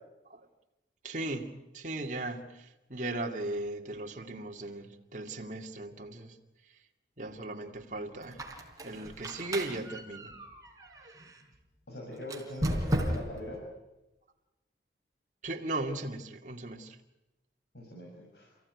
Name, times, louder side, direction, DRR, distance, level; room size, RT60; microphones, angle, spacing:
voice 1, 1.0-6.4 7.2-8.4 8.8-10.4 15.4-17.0, right 2 dB, 45° right, 2 dB, 2.4 m, -37 dB
Squeak, 8.2-11.4 12.2-13.5, equal, 20° right, 3.9 m, -35 dB
voice 2, 11.9-13.6 17.7-18.5, left 1 dB, 75° left, -2 dB, 6.4 m, -42 dB
29.5 x 16.0 x 9.7 m, 0.98 s
head